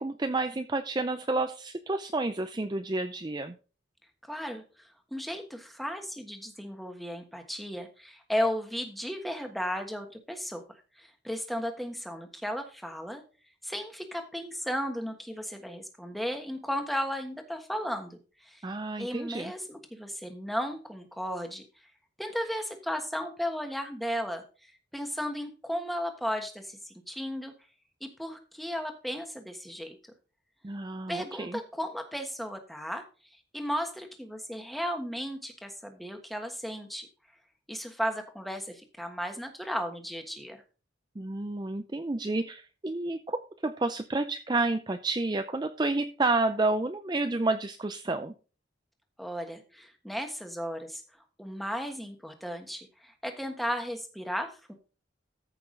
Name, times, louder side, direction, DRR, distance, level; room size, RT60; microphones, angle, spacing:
voice 1, 0.0-3.5 18.6-19.5 30.6-31.6 41.2-48.3, right 2 dB, 20° right, 8 dB, 0.4 m, -30 dB
voice 2, 4.3-10.6 11.0-13.2 13.6-18.6 19.0-21.6 22.2-27.5 28.0-30.0 31.1-33.0 33.5-37.1 37.7-40.6 49.2-51.0 51.4-54.7, equal, ahead, 5 dB, 1.3 m, -35 dB
14.0 x 5.9 x 3.8 m, 0.35 s
head